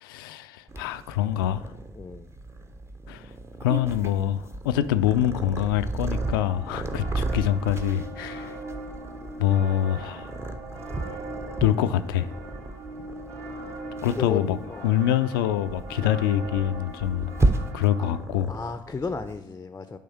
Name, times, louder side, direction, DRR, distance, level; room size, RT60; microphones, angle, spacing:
voice 1, 0.0-1.7 3.1-3.3 3.6-8.6 9.4-10.3 11.1-11.2 11.6-12.3 14.0-14.6 14.8-17.3 17.7-18.5, left 11 dB, 80° left, 11 dB, 0.4 m, -25 dB
Purr, 0.7-19.4, right 2 dB, 25° right, 0.9 m, -33 dB
voice 2, 2.0-2.3 14.2-14.4 14.7-14.9 18.5-20.0, left 4 dB, 20° left, 10 dB, 0.5 m, -33 dB
sound 1, 6.1-18.2, right 1 dB, 55° right, 2.2 m, -40 dB
8.5 x 3.5 x 5.6 m, 0.89 s
hypercardioid pair, 55°, 12 cm